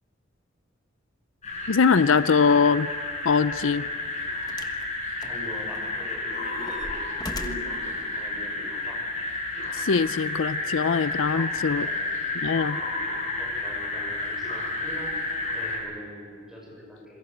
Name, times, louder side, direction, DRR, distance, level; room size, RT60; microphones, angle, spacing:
sound 1, 1.4-15.8, left 2 dB, 35° left, 7.7 m, -31 dB
voice 1, 1.7-2.9 3.2-3.9 9.7-11.9 12.3-12.8, left 5 dB, 80° left, 15 dB, 0.6 m, -22 dB
sound 2, 4.5-4.8 5.2-5.9 6.3-7.8 8.7-8.8, left 1 dB, 20° left, 1.3 m, -39 dB
voice 2, 5.2-9.0 11.3-11.5 11.8-12.1 13.4-15.2 15.5-17.2, equal, 5° right, -1 dB, 6.7 m, -42 dB
27.0 x 21.5 x 8.0 m, 2.2 s
head